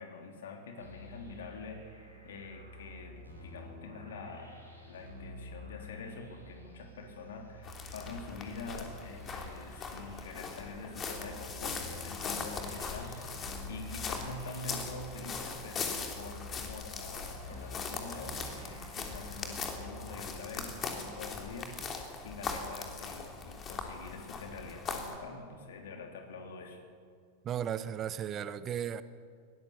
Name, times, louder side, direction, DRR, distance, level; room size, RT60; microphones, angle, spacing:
voice 1, 0.0-4.5 4.8-26.8, left 3 dB, 60° left, 3.5 m, -45 dB
sound 1, 0.8-20.2, left 1 dB, 85° left, 4.9 m, -50 dB
sound 2, 7.6-25.2, left 5 dB, 25° left, 3.2 m, -40 dB
sound 3, 16.9-22.6, right 3 dB, 10° right, 1.7 m, -54 dB
voice 2, 27.4-29.0, right 9 dB, 30° right, 0.8 m, -35 dB
22.0 x 18.0 x 7.3 m
figure-of-eight pair, 90°, 0 cm